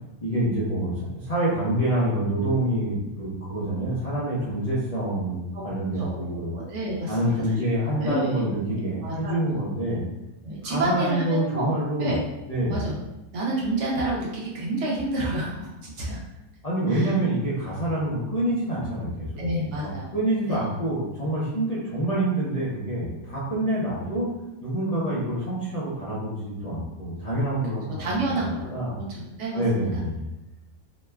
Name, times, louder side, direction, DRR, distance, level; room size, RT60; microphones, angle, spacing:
voice 1, 0.2-6.6 7.1-10.0 10.6-12.1 12.5-12.8 16.6-24.3 24.6-28.9 29.5-30.3, right 1 dB, 40° left, -10 dB, 0.5 m, -27 dB
voice 2, 6.0-8.5 9.0-9.6 10.4-12.2 12.7-12.9 13.3-16.2 16.9-17.1 19.4-20.1 20.5-20.7 28.0-30.0, right 1 dB, 60° right, -4 dB, 1.0 m, -30 dB
3.0 x 2.2 x 3.3 m, 0.99 s
omnidirectional pair, 1.5 m